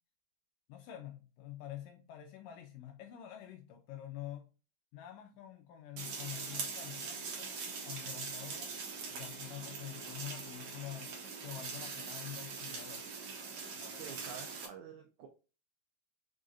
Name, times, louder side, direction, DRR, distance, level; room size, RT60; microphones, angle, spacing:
voice 1, 0.7-4.5 4.9-7.6 7.9-8.7 9.1-11.1 11.4-13.1 13.8-14.2, left 13 dB, 80° left, 4 dB, 2.0 m, -47 dB
sound 1, 6.0-14.7, right 5 dB, 60° right, 1.8 m, -42 dB
voice 2, 13.9-15.3, right 8 dB, 85° right, 3 dB, 1.7 m, -49 dB
5.6 x 3.8 x 2.5 m, 0.33 s
omnidirectional pair, 4.3 m